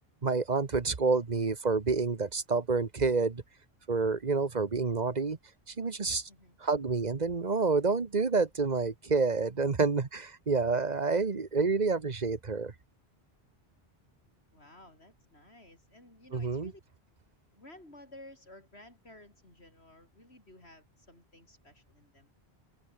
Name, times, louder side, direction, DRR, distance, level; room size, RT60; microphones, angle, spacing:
voice 1, 0.2-3.4 3.9-5.4 5.8-6.3 6.6-12.7 16.3-16.7, right 4 dB, 40° right, 1.4 m, -28 dB
voice 2, 14.5-16.8 17.5-22.3, left 1 dB, 80° left, 8.2 m, -54 dB
omnidirectional pair, 1.1 m